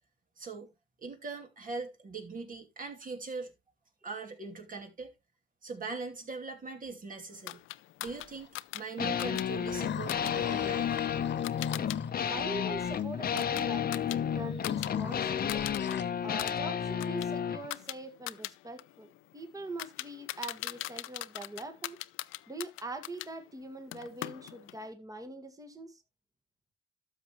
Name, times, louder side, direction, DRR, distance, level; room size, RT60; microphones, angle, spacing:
voice 1, 0.4-0.7 1.0-3.5 4.0-5.1 5.6-7.6 8.0-11.0, right 4 dB, 45° right, 2.7 m, -41 dB
sound 1, 7.5-12.0 12.3-14.9 15.2-15.9 16.3-23.3 23.9-24.8, left 17 dB, 85° left, 0.4 m, -42 dB
sound 2, 8.0-8.5 9.7-13.0 14.2-16.0, left 9 dB, 65° left, 1.3 m, -43 dB
sound 3, 9.0-17.7, left 8 dB, 50° left, 0.9 m, -32 dB
voice 2, 12.3-15.6 16.2-22.0 22.5-26.0, right 2 dB, 15° right, 1.7 m, -43 dB
12.5 x 6.7 x 3.0 m
cardioid pair, 90°, 20 cm